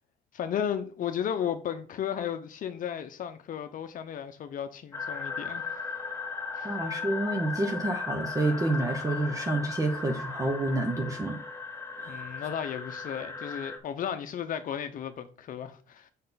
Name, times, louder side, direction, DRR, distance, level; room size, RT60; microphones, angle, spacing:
voice 1, 0.3-5.7 6.6-6.7 12.1-16.1, left 8 dB, 55° left, 0.8 m, -34 dB
sound 1, 4.9-13.8, left 4 dB, 15° left, 1.8 m, -37 dB
voice 2, 6.6-11.4 12.0-12.3, right 2 dB, 20° right, 0.9 m, -29 dB
6.5 x 5.6 x 4.0 m
cardioid pair, 110°, 17 cm